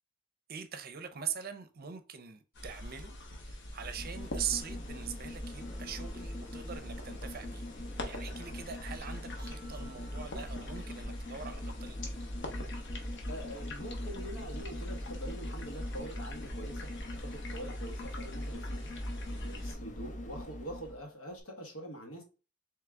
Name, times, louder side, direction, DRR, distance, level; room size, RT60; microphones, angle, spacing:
voice 1, 0.5-3.2 3.4-7.6 8.0-12.0, right 8 dB, 50° right, 0.6 m, -42 dB
sound 1, 2.6-19.7, left 1 dB, 60° left, 0.9 m, -42 dB
sound 2, 3.7-21.0 21.4-21.5, left 1 dB, 40° left, 0.6 m, -43 dB
sound 3, 5.6-16.0, left 1 dB, 15° right, 0.9 m, -59 dB
voice 2, 13.3-16.9 17.1-22.2, right 1 dB, 85° left, 1.4 m, -45 dB
3.6 x 3.1 x 3.4 m
head